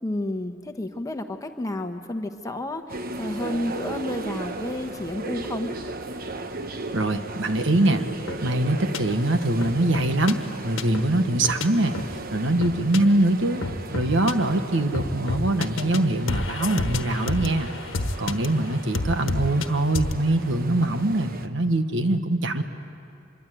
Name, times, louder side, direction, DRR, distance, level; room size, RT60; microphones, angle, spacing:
voice 1, 0.0-5.7, left 1 dB, 20° left, 6 dB, 1.2 m, -31 dB
sound 1, 2.9-21.5, right 3 dB, 50° right, 1.1 m, -36 dB
voice 2, 6.9-8.1 8.4-11.9 12.3-13.6 13.9-17.7 18.2-22.6, right 1 dB, 70° right, 8 dB, 1.4 m, -23 dB
sound 2, 8.3-8.4 8.9-9.0 9.6-10.3 10.8-11.1 11.4-11.6 11.9-12.1 12.6-13.0 13.6-14.3 14.9-16.0 16.3-18.5 18.9-19.7 19.9-20.2, left 2 dB, 75° left, 1.3 m, -29 dB
26.0 x 22.5 x 9.3 m, 2.4 s
head